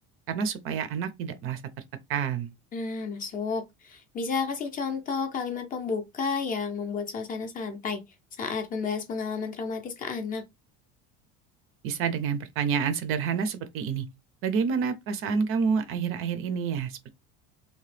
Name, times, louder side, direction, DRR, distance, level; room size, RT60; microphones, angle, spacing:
voice 1, 0.3-1.6 2.1-2.5 11.8-14.1 14.4-17.1, right 6 dB, 45° right, 0.5 m, -28 dB
voice 2, 2.7-8.0 8.4-10.4, left 5 dB, 25° left, 0.5 m, -31 dB
2.8 x 2.1 x 3.2 m
cardioid pair, 155°, 31 cm